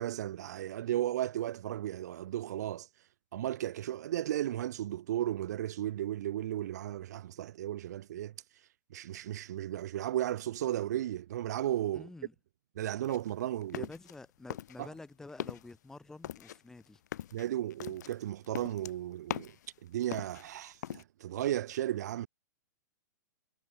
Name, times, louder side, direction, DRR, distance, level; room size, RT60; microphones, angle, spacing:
voice 1, 0.0-2.9 3.3-8.3 8.9-12.1 12.8-13.9 14.8-14.9 17.3-19.6 19.8-22.3, right 12 dB, 60° right, 0.6 m, -34 dB
voice 2, 11.9-12.3 13.7-17.0, left 3 dB, 5° left, 3.7 m, -49 dB
sound 1, 13.0-14.2 14.5-15.0 15.3-15.7 16.2-19.7 20.0-21.0, left 11 dB, 65° left, 1.0 m, -41 dB
hypercardioid pair, 155°, 10 cm